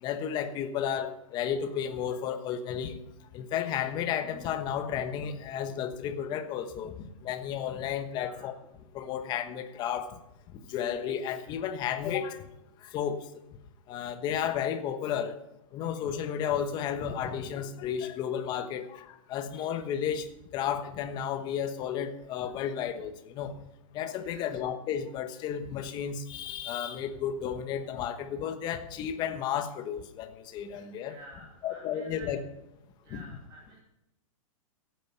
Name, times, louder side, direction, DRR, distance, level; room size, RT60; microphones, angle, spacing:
voice 1, 0.0-3.0 3.3-8.5 8.9-10.1 10.7-12.4 12.9-13.2 13.9-15.4 15.7-20.3 20.5-23.5 23.9-31.2 31.6-32.4 33.1-33.2, left 8 dB, 25° left, 8 dB, 1.1 m, -33 dB
voice 2, 8.1-8.5 24.2-24.5 30.7-32.4 33.0-33.8, right 2 dB, 25° right, -1 dB, 2.5 m, -51 dB
15.5 x 9.2 x 5.8 m, 0.88 s
hypercardioid pair, 155°, 18 cm